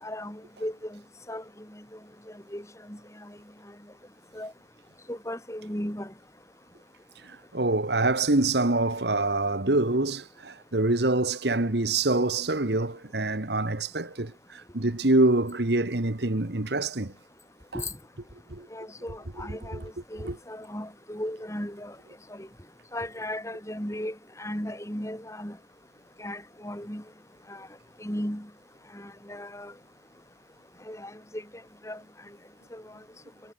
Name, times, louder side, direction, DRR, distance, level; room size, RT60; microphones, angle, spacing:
voice 1, 0.0-1.0 1.3-1.4 1.7-1.8 2.5-3.4 4.3-4.5 5.1-6.1 17.7-17.9 18.7-19.8 20.1-22.0 22.3-22.5 22.9-25.6 26.2-27.0 27.5-27.7 28.0-28.5 28.9-29.7 30.9-31.4 31.8-32.0 32.7-32.8, left 1 dB, 15° left, 5.6 m, -36 dB
voice 2, 7.2-17.1 17.7-17.8 18.5-18.7 19.7-19.8 20.2-20.4, right 2 dB, 60° right, 1.6 m, -25 dB
head